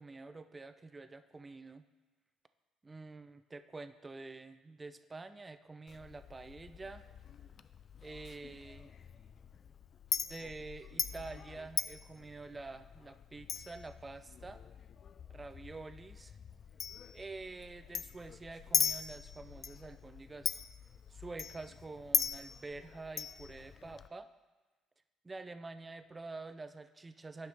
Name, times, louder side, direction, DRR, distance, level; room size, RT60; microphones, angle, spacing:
voice 1, 0.0-1.8 2.8-7.0 8.0-8.9 10.3-14.6 15.3-16.4 17.1-20.6 21.1-24.3 25.2-27.5, right 3 dB, 25° right, 11 dB, 0.5 m, -47 dB
Chink clink, 5.9-24.1, left 7 dB, 50° left, 0.3 m, -40 dB
9.4 x 5.7 x 3.4 m, 1.2 s
supercardioid pair, 65°, 0 cm